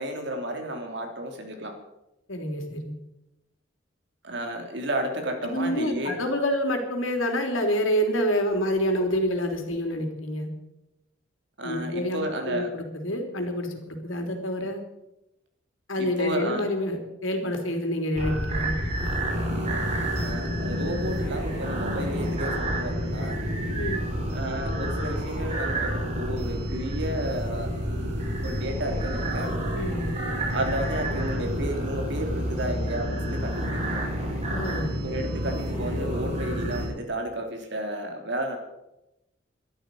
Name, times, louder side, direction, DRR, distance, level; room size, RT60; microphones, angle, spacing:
voice 1, 0.0-1.7 4.2-6.2 11.6-12.7 16.0-16.6 20.2-23.4 24.3-27.7 28.4-29.6 30.5-34.0 35.0-38.6, right 1 dB, 60° right, 3 dB, 3.4 m, -32 dB
voice 2, 2.3-3.0 5.4-10.5 11.6-14.8 15.9-18.8 23.8-24.1 29.7-30.1 34.5-34.9, equal, 85° left, 4 dB, 3.4 m, -27 dB
sound 1, 18.2-36.9, equal, 35° right, 4.8 m, -29 dB
12.5 x 12.0 x 9.1 m, 0.92 s
head